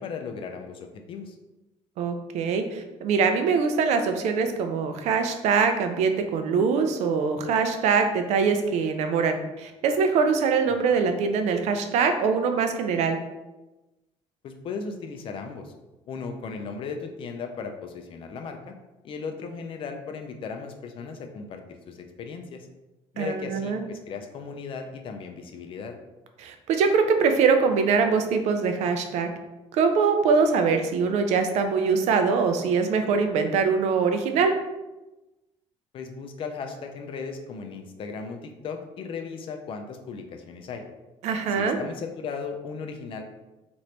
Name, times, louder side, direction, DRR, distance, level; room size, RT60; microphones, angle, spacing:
voice 1, 0.0-1.4 10.7-10.8 14.4-15.7 16.1-18.8 19.0-22.7 23.1-26.0 35.9-40.8 41.5-43.2, left 5 dB, 50° left, 5 dB, 0.4 m, -36 dB
voice 2, 2.0-13.2 23.2-23.8 26.4-29.3 29.7-34.5 41.2-41.8, right 5 dB, 70° right, 7 dB, 0.4 m, -23 dB
2.9 x 2.5 x 3.2 m, 1.0 s
cardioid pair, 150°, 12 cm